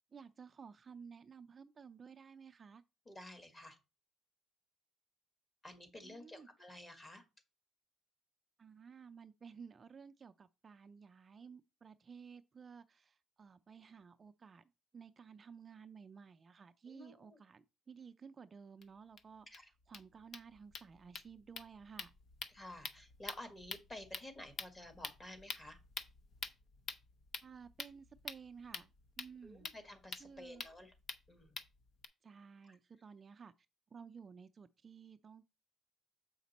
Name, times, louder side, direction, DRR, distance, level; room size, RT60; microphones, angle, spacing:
voice 1, 0.1-2.8 6.0-6.5 8.6-14.6 14.9-22.1 27.4-28.9 29.2-29.7 30.2-30.6 32.2-33.5 33.9-35.5, right 6 dB, 30° right, 0.4 m, -55 dB
voice 2, 3.0-3.8 5.6-7.2 16.9-17.4 19.5-19.7 22.5-25.8 29.4-30.9 31.3-31.6 32.6-32.8, left 1 dB, 25° left, 1.7 m, -52 dB
sound 1, 18.8-18.9 19.2-19.3 19.5-19.6 19.8-32.1, left 5 dB, 45° left, 0.7 m, -48 dB
7.2 x 5.1 x 4.1 m
cardioid pair, 125°, 0 cm